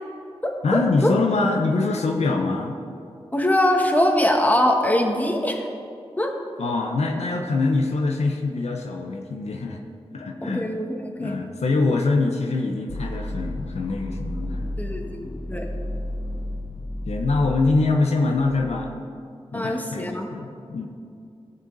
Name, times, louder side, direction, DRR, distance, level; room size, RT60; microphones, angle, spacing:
voice 1, 0.6-2.8 6.6-9.8 10.1-10.7 11.2-14.7 17.1-18.9 19.5-20.9, left 3 dB, 80° left, 2 dB, 0.8 m, -24 dB
voice 2, 3.3-5.7 6.2-6.3 10.4-11.4 14.8-15.7 19.5-20.3, left 1 dB, 15° left, 2 dB, 1.6 m, -22 dB
sound 1, 12.9-18.9, left 1 dB, 50° left, 1.1 m, -32 dB
17.0 x 6.3 x 4.1 m, 2.5 s
cardioid pair, 45°, 11 cm